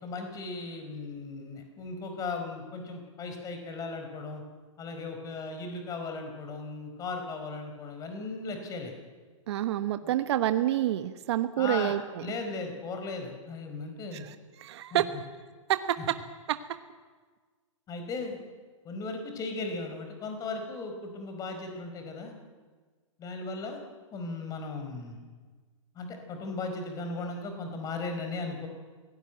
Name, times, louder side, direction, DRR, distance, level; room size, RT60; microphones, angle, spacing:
voice 1, 0.0-4.4 4.8-8.9 10.0-10.1 11.6-11.9 12.2-14.3 14.9-15.0 17.9-18.4 18.8-22.3 23.2-23.8 24.1-25.2 25.9-28.7, left 3 dB, 20° left, 5 dB, 4.6 m, -37 dB
voice 2, 9.5-12.2 14.2-14.3 14.6-15.1 15.7-16.2 16.5-16.6, right 12 dB, 55° right, 10 dB, 1.2 m, -28 dB
27.5 x 18.0 x 9.2 m, 1.5 s
hypercardioid pair, 140°, 17 cm